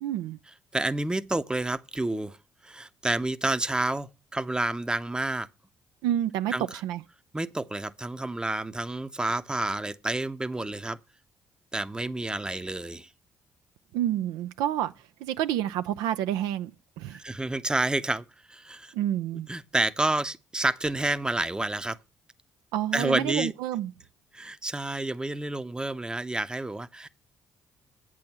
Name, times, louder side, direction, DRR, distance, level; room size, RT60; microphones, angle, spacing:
voice 1, 0.0-0.4 6.0-7.0 13.9-14.9 15.2-16.7 17.0-17.2 18.9-19.5 22.7-23.9, right 11 dB, 75° right, 0.4 m, -28 dB
voice 2, 0.7-2.4 2.6-5.5 6.5-6.8 7.3-11.0 11.7-13.1 17.1-18.9 19.5-22.0 22.9-23.5 24.3-27.1, right 2 dB, 10° right, 0.7 m, -29 dB
8.5 x 6.3 x 5.6 m
hypercardioid pair, 50°, 7 cm